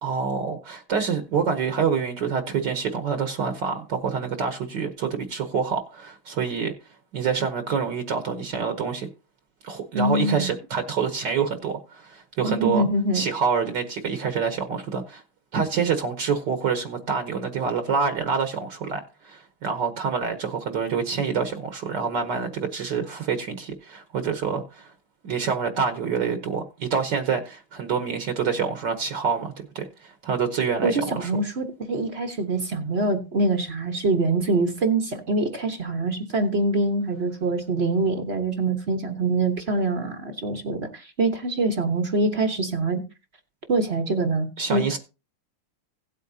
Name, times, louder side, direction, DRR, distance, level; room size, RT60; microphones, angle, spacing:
voice 1, 0.0-6.7 7.1-9.1 9.6-12.8 13.1-15.2 15.5-24.9 25.2-31.3 44.6-45.0, right 6 dB, 60° right, 1.6 m, -27 dB
voice 2, 9.9-10.5 12.4-13.2 30.8-43.0 43.7-45.0, right 2 dB, 40° right, 1.1 m, -24 dB
16.5 x 8.4 x 2.7 m
omnidirectional pair, 2.3 m